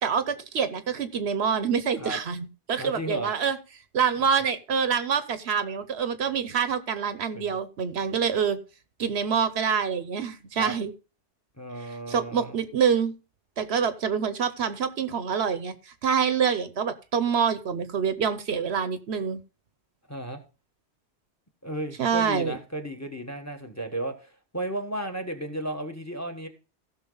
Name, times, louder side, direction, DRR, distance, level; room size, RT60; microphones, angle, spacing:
voice 1, 0.0-3.6 3.9-8.6 9.0-10.9 11.8-13.1 13.6-19.4 22.0-22.6, right 7 dB, 65° right, 12 dB, 1.0 m, -26 dB
voice 2, 2.8-3.3 7.3-7.6 10.6-10.7 11.6-12.6 20.1-20.4 21.6-26.5, right 1 dB, 15° left, 7 dB, 1.2 m, -34 dB
15.5 x 6.2 x 3.9 m, 0.33 s
omnidirectional pair, 1.2 m